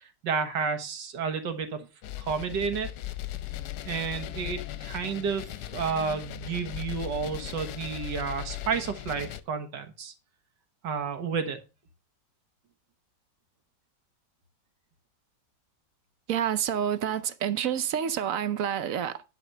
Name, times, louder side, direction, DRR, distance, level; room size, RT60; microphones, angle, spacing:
voice 1, 0.0-1.8 2.2-2.9 3.9-10.1 10.8-11.6, right 6 dB, 85° right, 2.0 m, -31 dB
sound 1, 2.0-9.4, left 13 dB, 70° left, 1.2 m, -38 dB
voice 2, 16.3-19.2, right 9 dB, 60° right, 1.0 m, -28 dB
11.0 x 4.2 x 6.6 m
omnidirectional pair, 1.8 m